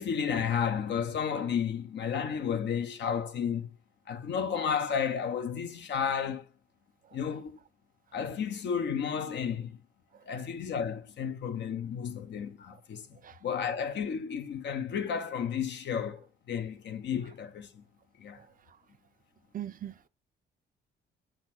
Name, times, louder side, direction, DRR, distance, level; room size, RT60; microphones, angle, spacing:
voice 1, 0.0-3.7 4.1-6.4 7.1-7.6 8.1-9.8 10.3-13.1 13.4-17.8 18.2-18.4, left 7 dB, 65° left, 0.9 m, -32 dB
voice 2, 19.5-20.1, right 11 dB, 45° right, 0.5 m, -41 dB
7.6 x 3.9 x 5.9 m
cardioid pair, 90°, 20 cm